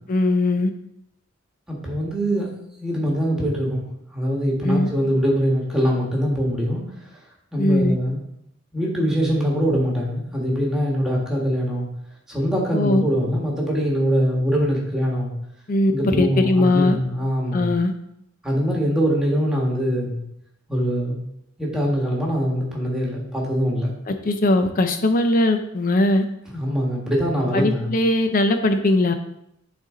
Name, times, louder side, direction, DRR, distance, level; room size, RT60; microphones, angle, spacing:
voice 1, 0.1-0.7 4.6-4.9 7.6-8.0 12.7-13.0 15.7-17.0 17.5-17.9 24.1-26.2 27.5-29.1, left 2 dB, 40° left, 7 dB, 0.5 m, -20 dB
voice 2, 1.7-2.5 2.8-3.8 4.1-6.8 7.5-8.2 8.7-11.9 12.3-15.3 15.9-17.8 18.4-20.2 20.7-21.2 21.6-23.9 26.5-27.9, equal, 5° right, -3 dB, 1.8 m, -23 dB
10.0 x 4.1 x 3.8 m, 0.79 s
head